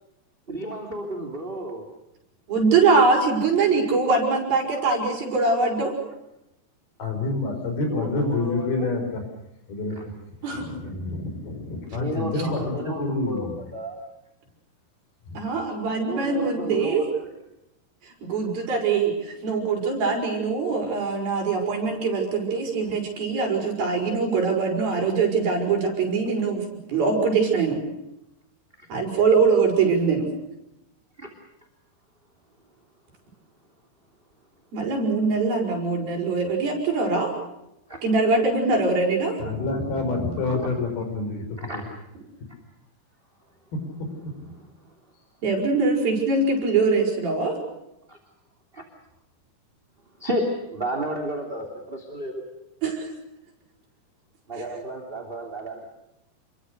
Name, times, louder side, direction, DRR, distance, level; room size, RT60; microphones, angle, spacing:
voice 1, 0.5-1.9 7.9-8.9 10.0-10.1 11.9-14.0 16.0-17.3 28.8-28.9 31.2-31.3 37.1-37.2 37.9-38.0 40.5-40.6 41.6-41.8 44.8-44.9 48.1-48.2 48.7-48.8 50.2-52.4 54.5-55.8, right 1 dB, 15° right, 4 dB, 2.7 m, -32 dB
voice 2, 2.5-5.9 10.4-10.7 15.3-17.1 18.0-27.8 28.9-30.3 34.7-37.3 38.0-39.4 45.4-47.6 52.8-53.1, right 4 dB, 60° right, 1 dB, 7.8 m, -23 dB
voice 3, 7.0-9.2 9.7-10.1 10.5-13.6 15.3-15.4 39.4-41.4 41.7-41.8 44.4-44.5, left 3 dB, 65° left, 5 dB, 7.0 m, -28 dB
28.5 x 23.0 x 6.7 m, 0.86 s
omnidirectional pair, 4.7 m